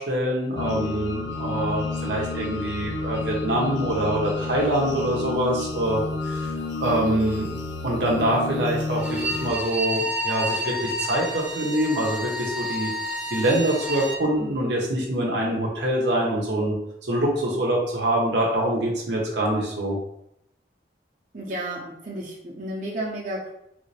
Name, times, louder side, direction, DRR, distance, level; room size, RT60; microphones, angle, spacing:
voice 1, 0.0-6.5 6.8-7.5 7.8-12.9 13.3-16.7 17.1-20.0, right 1 dB, 75° right, -2 dB, 0.9 m, -25 dB
sound 1, 0.6-9.5, left 3 dB, 85° left, 0.4 m, -30 dB
Bowed string instrument, 8.9-14.2, equal, 5° right, 0.9 m, -30 dB
voice 2, 21.3-23.5, right 1 dB, 45° right, -4 dB, 0.9 m, -32 dB
3.4 x 2.7 x 3.2 m, 0.76 s
head